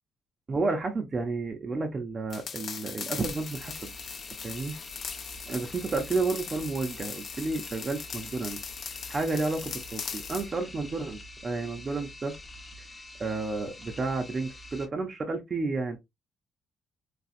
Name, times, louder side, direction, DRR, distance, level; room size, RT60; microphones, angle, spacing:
voice 1, 0.5-3.9 4.4-4.8 5.5-8.6 9.1-12.3 13.2-16.0, right 3 dB, 35° right, 0.7 m, -31 dB
sound 1, 2.3-10.5, left 6 dB, 55° left, 0.7 m, -40 dB
sound 2, 3.2-14.9, left 1 dB, 20° left, 0.9 m, -46 dB
4.2 x 2.3 x 2.5 m
cardioid pair, 90°, 0 cm